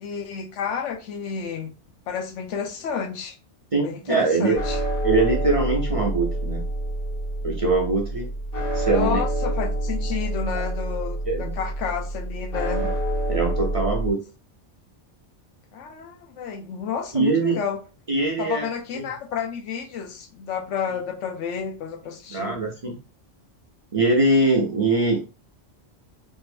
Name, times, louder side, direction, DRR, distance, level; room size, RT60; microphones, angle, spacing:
voice 1, 0.0-1.7 2.1-3.3 3.8-4.8 8.9-12.9 15.7-17.8 18.4-22.6, left 6 dB, 80° left, 1.0 m, -31 dB
voice 2, 3.7-4.6 5.0-6.6 7.4-8.3 8.7-9.2 10.5-10.6 11.2-11.6 12.8-12.9 13.3-14.2 17.1-17.6 18.1-18.7 18.9-19.1 22.3-23.0 23.9-25.2, right 3 dB, 35° right, 0.6 m, -22 dB
sound 1, 4.5-14.1, right 1 dB, 50° left, 2.0 m, -27 dB
3.7 x 2.7 x 2.5 m
omnidirectional pair, 1.3 m